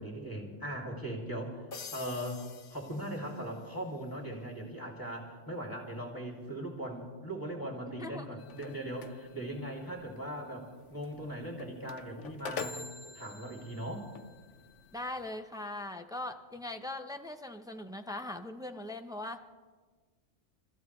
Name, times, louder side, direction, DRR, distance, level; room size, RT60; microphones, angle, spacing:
voice 1, 0.0-1.6 1.9-2.4 2.7-12.9 13.1-14.1, right 1 dB, 15° left, 0 dB, 2.6 m, -39 dB
sound 1, 1.7-3.8, left 5 dB, 50° left, 1.0 m, -48 dB
voice 2, 7.9-8.3 14.9-19.4, left 2 dB, 5° right, 6 dB, 0.5 m, -40 dB
sound 2, 8.4-15.4, left 5 dB, 80° left, 1.1 m, -46 dB
29.5 x 14.0 x 3.2 m, 1.4 s
omnidirectional pair, 1.2 m